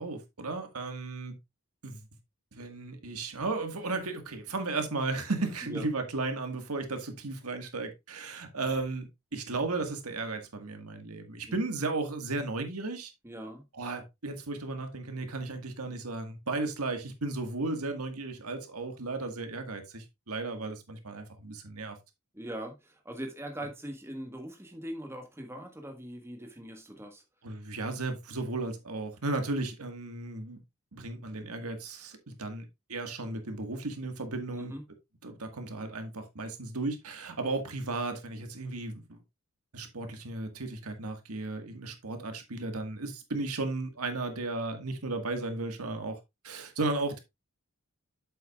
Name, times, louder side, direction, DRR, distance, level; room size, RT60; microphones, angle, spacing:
voice 1, 0.0-1.3 1.8-2.0 2.5-13.1 13.7-22.0 27.4-30.6 30.9-34.7 35.2-39.2 39.7-46.2 46.4-47.2, right 3 dB, 80° right, 1.7 m, -35 dB
voice 2, 13.2-13.6 22.3-27.2 34.5-34.8, right 1 dB, 10° right, 1.5 m, -41 dB
8.3 x 7.6 x 2.4 m
head